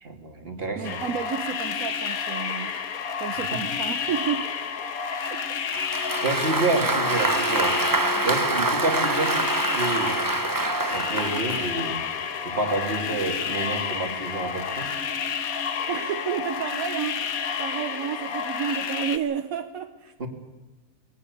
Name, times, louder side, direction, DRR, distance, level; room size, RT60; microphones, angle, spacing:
voice 1, 0.0-1.0 5.2-5.4 6.2-7.8 8.2-10.2 10.9-12.0 12.4-14.9 20.2-20.3, right 2 dB, 40° right, 3 dB, 2.8 m, -29 dB
voice 2, 0.7-2.8 3.2-4.5 5.5-5.6 6.8-6.9 15.9-17.3 17.6-20.3, right 8 dB, 75° right, 8 dB, 1.3 m, -31 dB
sound 1, 0.8-19.2, left 6 dB, 80° left, 1.6 m, -30 dB
Bowed string instrument, 5.7-10.6, left 10 dB, 60° left, 1.2 m, -38 dB
Applause, 5.7-11.7, right 3 dB, 25° right, 0.5 m, -26 dB
21.5 x 18.0 x 8.3 m, 1.2 s
omnidirectional pair, 1.5 m